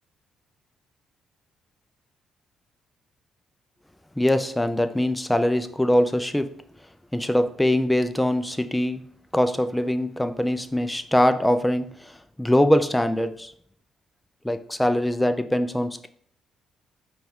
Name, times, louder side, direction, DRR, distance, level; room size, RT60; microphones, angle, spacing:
voice 1, 4.2-6.5 7.1-9.0 9.3-12.1 12.4-13.5 14.4-16.1, left 1 dB, 5° left, 9 dB, 0.3 m, -22 dB
5.1 x 2.3 x 3.5 m, 0.63 s
cardioid pair, 90°, 0 cm